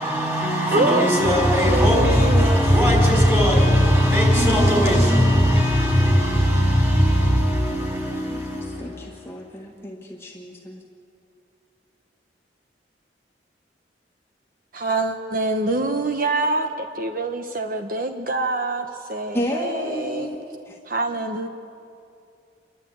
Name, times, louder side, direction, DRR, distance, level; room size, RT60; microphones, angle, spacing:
voice 1, 0.0-9.0, equal, 15° right, 5.2 m, -18 dB
voice 2, 0.7-1.3 1.6-2.6 14.7-20.3 20.9-21.5, right 2 dB, 55° right, 0.9 m, -25 dB
voice 3, 8.1-10.8 19.3-20.8, equal, 15° left, 1.7 m, -32 dB
28.5 x 12.0 x 9.1 m
head